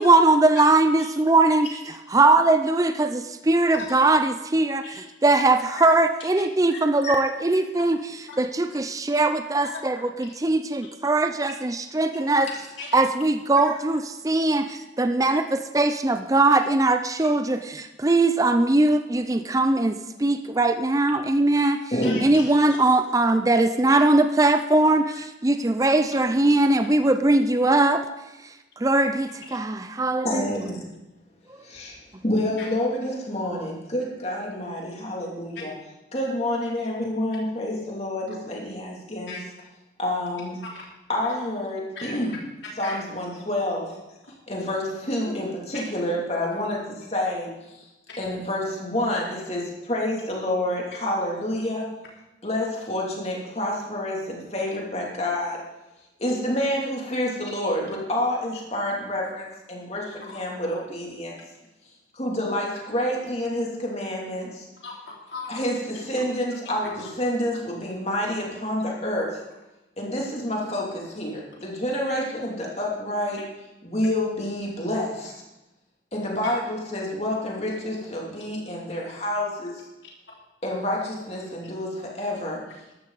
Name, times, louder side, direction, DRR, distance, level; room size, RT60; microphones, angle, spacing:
voice 1, 0.0-12.5 12.9-21.8 22.2-25.1 25.4-28.0 28.8-30.5, right 2 dB, 20° right, 8 dB, 0.5 m, -21 dB
voice 2, 12.5-13.0 13.6-13.7 22.0-22.5 32.6-32.7 39.3-39.4 42.0-42.2 42.8-43.0 46.5-46.6 60.3-60.4 64.8-65.6 67.0-67.1, left 4 dB, 80° left, -3 dB, 3.3 m, -37 dB
voice 3, 21.9-22.3 30.2-30.8 31.6-35.7 36.1-39.4 40.0-40.6 41.1-42.3 42.8-44.0 44.5-47.9 48.2-51.9 52.4-55.6 56.2-61.4 62.1-64.7 65.5-69.4 70.0-73.4 73.8-75.3 76.1-79.8 80.6-82.6, left 1 dB, 35° left, -2 dB, 2.9 m, -28 dB
14.0 x 11.5 x 4.1 m, 1.0 s
head